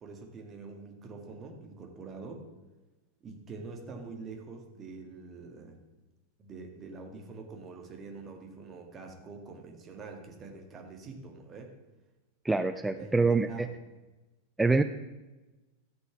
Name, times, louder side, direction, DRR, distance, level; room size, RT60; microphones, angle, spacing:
voice 1, 0.0-2.5 3.2-5.8 6.4-11.7 12.6-13.7, right 4 dB, 25° right, 3 dB, 1.9 m, -45 dB
voice 2, 12.4-13.7 14.6-14.8, right 3 dB, 5° right, 9 dB, 0.4 m, -25 dB
13.5 x 6.8 x 6.0 m, 1.1 s
figure-of-eight pair, 90°, 0 cm